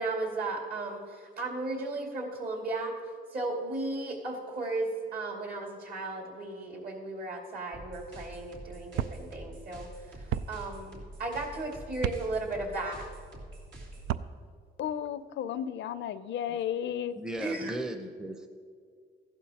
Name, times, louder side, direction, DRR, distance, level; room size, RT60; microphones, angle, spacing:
voice 1, 0.0-2.9 3.3-13.1 17.4-17.7, right 2 dB, 50° right, 0 dB, 2.4 m, -35 dB
sound 1, 7.7-14.1, right 1 dB, 70° right, 3.0 m, -46 dB
sound 2, 9.0-9.2 10.3-10.5 12.0-12.2 14.0-14.3, right 11 dB, 85° right, 0.4 m, -31 dB
voice 2, 14.8-17.2, left 9 dB, 70° left, 14 dB, 0.5 m, -33 dB
voice 3, 17.1-18.5, right 1 dB, 5° right, 5 dB, 0.7 m, -37 dB
15.5 x 11.5 x 2.9 m, 2.1 s
cardioid pair, 90°, 20 cm